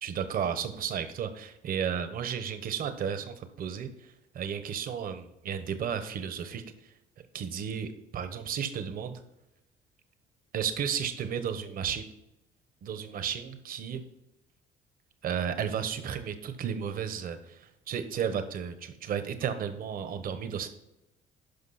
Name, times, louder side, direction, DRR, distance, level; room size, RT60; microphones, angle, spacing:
voice 1, 0.0-6.6 7.3-9.2 10.5-12.1 12.8-14.0 15.2-20.7, right 8 dB, 60° right, 10 dB, 1.2 m, -33 dB
12.0 x 5.3 x 4.2 m, 0.87 s
cardioid pair, 110°, 17 cm